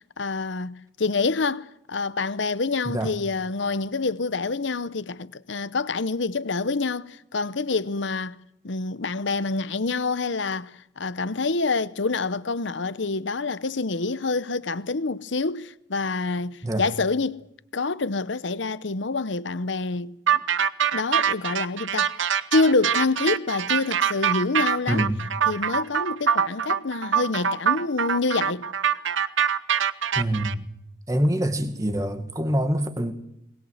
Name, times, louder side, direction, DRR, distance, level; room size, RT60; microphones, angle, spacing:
voice 1, 0.0-8.4 8.6-17.5 17.7-20.4 20.9-22.1 22.5-25.1 25.5-28.7, left 3 dB, 70° left, 0.9 m, -27 dB
sound 1, 20.3-30.5, right 8 dB, 80° right, 0.9 m, -24 dB
voice 2, 24.9-25.4 30.2-30.7 31.1-33.1, right 1 dB, 15° right, 1.8 m, -25 dB
21.5 x 20.0 x 8.0 m
head